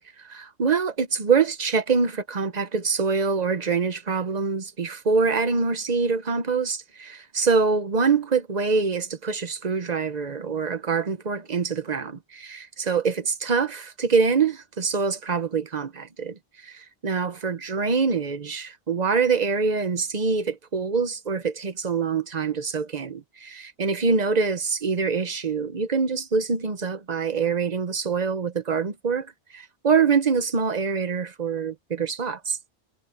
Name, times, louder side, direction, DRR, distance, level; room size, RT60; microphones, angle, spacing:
voice 1, 0.2-32.6, right 5 dB, 40° right, 1.0 m, -25 dB
omnidirectional pair, 1.2 m